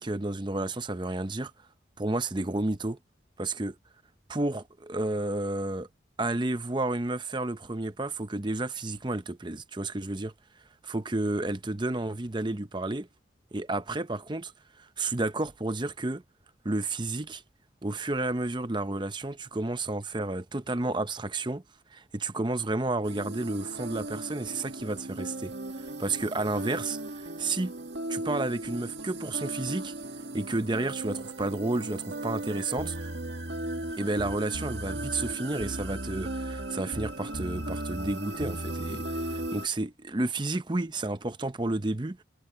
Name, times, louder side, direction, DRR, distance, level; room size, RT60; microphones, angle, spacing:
voice 1, 0.0-1.5 2.0-3.0 3.4-3.8 4.3-5.9 6.2-10.3 10.8-13.1 13.5-14.5 15.0-16.2 16.6-17.4 17.8-21.6 21.9-25.5 26.0-27.0 27.4-27.7 28.1-29.9 30.3-32.9 34.0-42.2, right 2 dB, 25° right, 0.8 m, -31 dB
sound 1, 23.0-39.7, right 1 dB, 65° right, 2.2 m, -36 dB
head